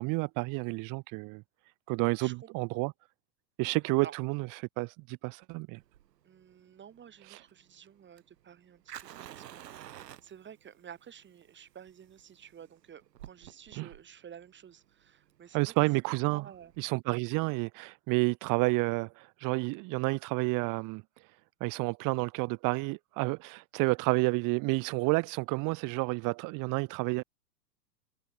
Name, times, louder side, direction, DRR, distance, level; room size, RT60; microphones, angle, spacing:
voice 1, 0.0-1.4 1.9-2.9 3.6-5.8 13.8-13.9 15.5-16.4 16.8-21.0 21.6-27.2, right 27 dB, 40° right, 1.6 m, -30 dB
voice 2, 2.2-2.8 4.0-4.2 6.2-15.7 16.3-16.7, right 8 dB, 20° right, 6.3 m, -51 dB
Fire, 5.8-16.9, right 11 dB, 70° right, 6.1 m, -51 dB
hypercardioid pair, 115°, 50 cm